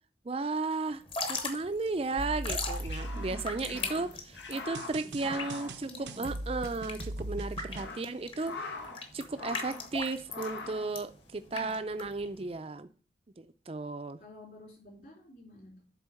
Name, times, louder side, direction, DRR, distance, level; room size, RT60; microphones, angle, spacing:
voice 1, 0.3-1.0 1.3-4.1 4.5-8.5 9.1-12.9 13.4-14.2, right 3 dB, 35° right, 10 dB, 0.5 m, -34 dB
Drip / Trickle dribble, 1.0-12.6, left 3 dB, 30° left, 1.2 m, -39 dB
sound 1, 2.2-4.0 4.7-7.9, right 1 dB, 80° right, 0.7 m, -39 dB
sound 2, 2.7-6.6 6.9-7.0 7.5-9.1 9.3-9.9 10.3-10.9, left 3 dB, 90° left, 1.5 m, -43 dB
voice 2, 3.1-4.0 4.9-6.3 7.9-8.1 11.5-11.8 14.2-15.8, left 1 dB, 50° left, -3 dB, 4.1 m, -51 dB
8.2 x 3.9 x 6.4 m, 0.37 s
head